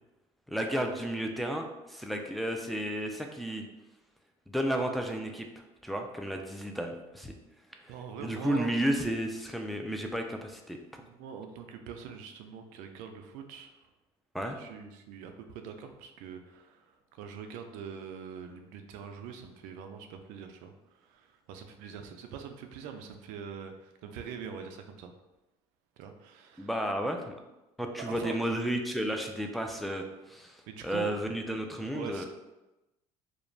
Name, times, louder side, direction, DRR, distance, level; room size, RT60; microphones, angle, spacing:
voice 1, 0.5-3.6 4.5-5.5 5.8-7.3 7.8-7.9 8.2-10.8 14.3-14.6 26.6-27.3 27.8-32.3, right 1 dB, ahead, 2 dB, 0.3 m, -32 dB
voice 2, 7.9-8.7 11.0-13.9 14.4-20.7 21.0-25.1 26.0-26.7 28.0-28.4 30.7-31.1 31.8-32.3, right 6 dB, 75° right, 6 dB, 0.4 m, -44 dB
2.4 x 2.1 x 3.1 m, 1.0 s
supercardioid pair, 100°, 13 cm